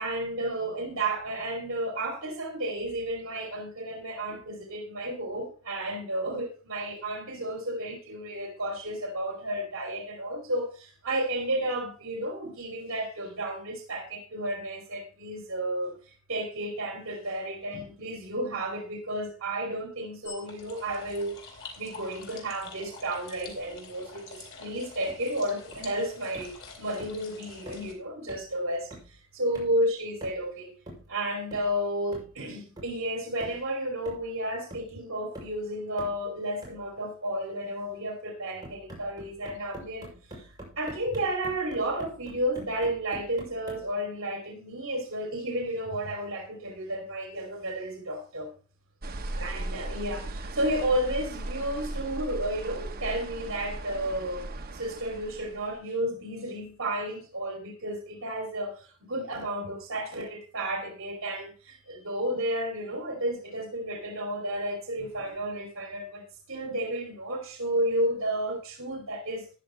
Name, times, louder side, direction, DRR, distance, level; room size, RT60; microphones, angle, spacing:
voice 1, 0.0-21.4 21.8-30.7 31.1-48.5 49.3-54.5 54.7-69.5, right 1 dB, 70° right, 2.8 m, -32 dB
sound 1, 20.2-27.9, left 4 dB, 65° left, 3.9 m, -47 dB
sound 2, 25.1-25.3 25.7-26.0 26.3-26.6 27.0-27.2 27.7-27.9 28.3-28.5 28.9-29.2 29.5-29.8 30.2-30.5 30.9-31.1 31.5-31.8 32.1-32.4 32.8-33.0 33.4-33.7 34.1-34.4 34.7-35.0 35.3-35.6 36.0-36.2 36.6-36.9 38.6-43.9, right 1 dB, 20° right, 6.0 m, -46 dB
sound 3, 49.0-55.8, right 2 dB, 45° right, 1.0 m, -37 dB
14.0 x 9.9 x 3.2 m
head